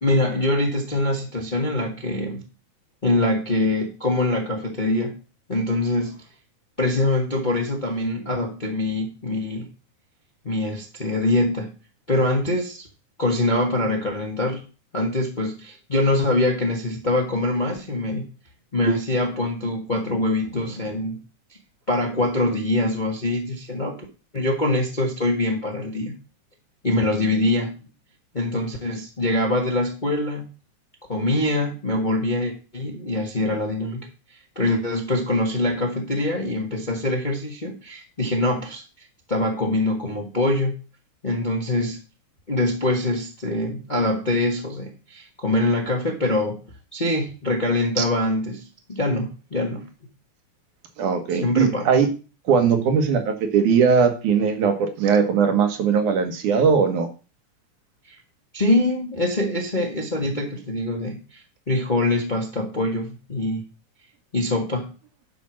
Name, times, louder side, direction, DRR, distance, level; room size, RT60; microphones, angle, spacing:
voice 1, 0.0-2.4 3.0-5.2 5.5-6.2 6.8-9.7 10.4-11.7 12.1-12.9 13.2-14.6 14.9-18.2 18.7-21.2 21.9-24.0 24.3-26.1 26.8-27.8 28.3-30.4 31.1-34.1 34.5-38.8 39.3-40.7 41.2-42.0 42.5-46.6 46.9-49.9 51.3-52.0 58.1-58.2 58.5-61.4 61.7-63.6 64.3-64.9, left 1 dB, 25° left, 1 dB, 1.0 m, -24 dB
voice 2, 51.0-52.1 52.5-57.1, right 6 dB, 75° right, 6 dB, 2.8 m, -19 dB
11.0 x 5.1 x 6.2 m, 0.34 s
omnidirectional pair, 3.6 m